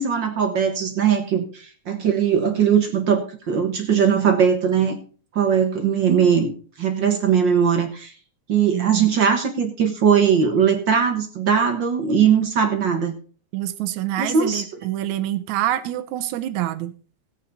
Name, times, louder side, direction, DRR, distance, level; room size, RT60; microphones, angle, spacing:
voice 1, 0.0-5.0 5.3-6.5 6.8-8.1 8.5-13.1 14.2-14.6, right 7 dB, 50° right, 6 dB, 1.6 m, -20 dB
voice 2, 8.7-9.1 13.5-16.9, right 13 dB, 80° right, 13 dB, 2.2 m, -26 dB
16.5 x 8.3 x 4.0 m, 0.40 s
omnidirectional pair, 3.3 m